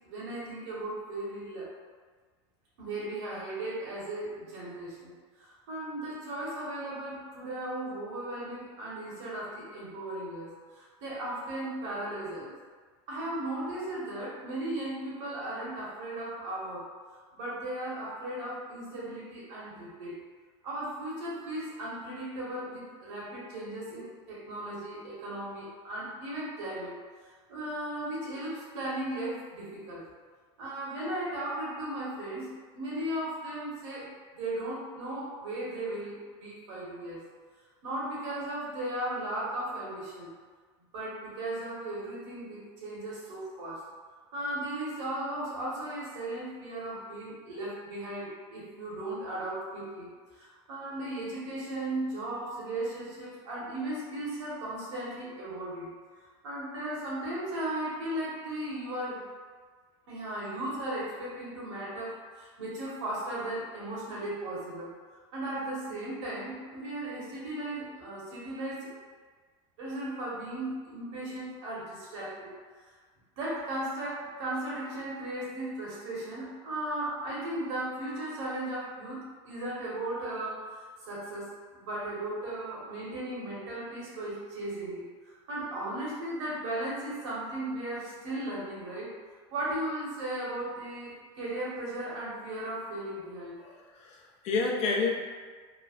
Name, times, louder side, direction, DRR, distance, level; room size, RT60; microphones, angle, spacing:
voice 1, 0.0-1.7 2.8-5.1 5.4-12.5 13.1-16.9 17.4-20.2 20.6-27.0 27.5-30.1 30.6-37.2 37.8-40.3 40.9-43.8 44.3-55.9 56.4-59.2 60.1-64.9 65.3-68.9 69.8-72.5 72.8-72.9 73.4-80.6 81.1-85.1 85.5-89.1 89.5-93.6, right 1 dB, 85° right, -6 dB, 1.1 m, -36 dB
voice 2, 93.6-95.1, left 4 dB, 45° left, -2 dB, 0.6 m, -30 dB
3.1 x 2.1 x 2.4 m, 1.5 s
supercardioid pair, 120°, 15 cm